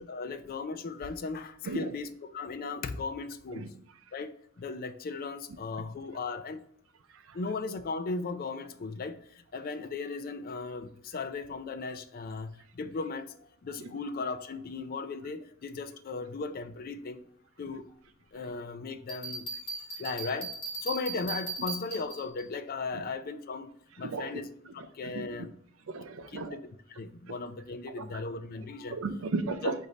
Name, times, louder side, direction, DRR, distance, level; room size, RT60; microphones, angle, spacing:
voice 1, 0.0-3.7 4.1-6.6 7.3-17.2 17.6-17.9 18.3-19.5 20.0-20.5 20.8-25.5 26.3-26.6 26.9-29.0 29.6-29.7, left 4 dB, 45° left, 10 dB, 0.4 m, -37 dB
Bell, 19.1-22.4, right 3 dB, 25° left, 1.5 m, -38 dB
voice 2, 24.0-24.4 25.0-25.5 25.9-26.6 28.0-28.1 28.9-29.7, right 3 dB, 75° right, 8 dB, 0.5 m, -35 dB
4.9 x 2.6 x 4.1 m, 0.70 s
head